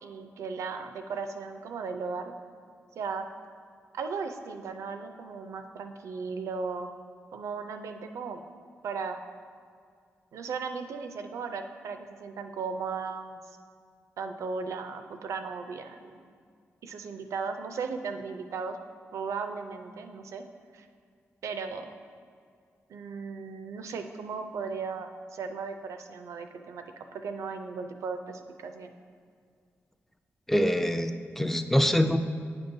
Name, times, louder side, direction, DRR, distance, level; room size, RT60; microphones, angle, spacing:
voice 1, 0.0-2.3 3.0-3.3 3.9-6.9 7.3-8.4 8.8-9.2 10.3-13.4 14.2-16.2 16.8-18.8 19.1-20.4 20.7-20.9 21.4-21.9 22.9-26.8 27.1-28.9, right 5 dB, 80° right, 6 dB, 0.4 m, -36 dB
voice 2, 30.5-32.2, equal, 5° left, 8 dB, 0.4 m, -24 dB
9.0 x 5.3 x 2.6 m, 2.2 s
cardioid pair, 70°, 5 cm